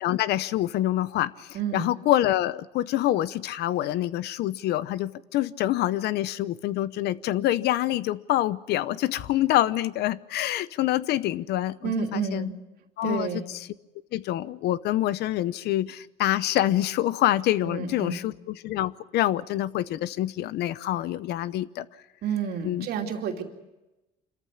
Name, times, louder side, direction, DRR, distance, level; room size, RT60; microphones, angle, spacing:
voice 1, 0.0-12.5 13.0-13.7 14.1-21.9 22.6-22.9, left 14 dB, 75° left, 17 dB, 0.8 m, -26 dB
voice 2, 1.5-1.9 11.8-12.5 13.0-13.5 17.6-18.2 22.2-23.4, right 7 dB, 70° right, 4 dB, 2.8 m, -30 dB
26.0 x 14.5 x 9.7 m, 1.0 s
cardioid pair, 110°, 17 cm